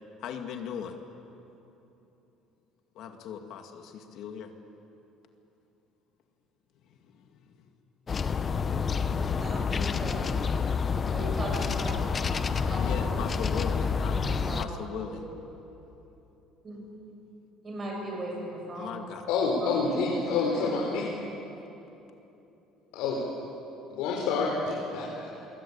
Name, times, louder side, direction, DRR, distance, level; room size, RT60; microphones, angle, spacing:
voice 1, 0.2-1.0 3.0-4.5 6.9-7.7 12.8-15.3 18.7-19.3, left 8 dB, 55° left, 5 dB, 2.1 m, -39 dB
sound 1, 8.1-14.6, left 5 dB, 25° left, 0.8 m, -28 dB
voice 2, 9.4-10.3 11.1-14.6 16.6-17.1 17.6-19.1 19.6-20.2 20.5-20.9, right 1 dB, 20° right, -1 dB, 7.7 m, -38 dB
voice 3, 19.3-21.0 22.9-23.2 23.9-25.3, left 4 dB, 80° left, -2 dB, 4.5 m, -28 dB
29.5 x 22.5 x 8.7 m, 3.0 s
cardioid pair, 170°, 0 cm